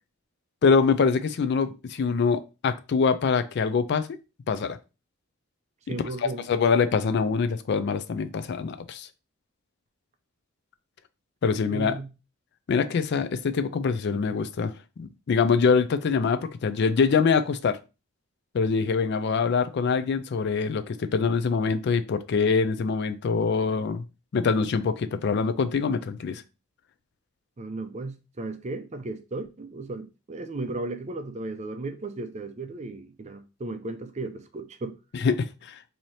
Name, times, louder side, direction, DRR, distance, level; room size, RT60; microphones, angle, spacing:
voice 1, 0.6-4.1 4.5-4.8 6.2-9.1 11.4-12.0 12.7-17.8 18.5-24.0 24.3-26.4 35.2-35.8, left 5 dB, 55° left, 0.4 m, -24 dB
voice 2, 5.9-6.4 11.7-12.1 27.6-35.0, right 2 dB, 35° right, 0.5 m, -35 dB
3.1 x 2.8 x 4.1 m
head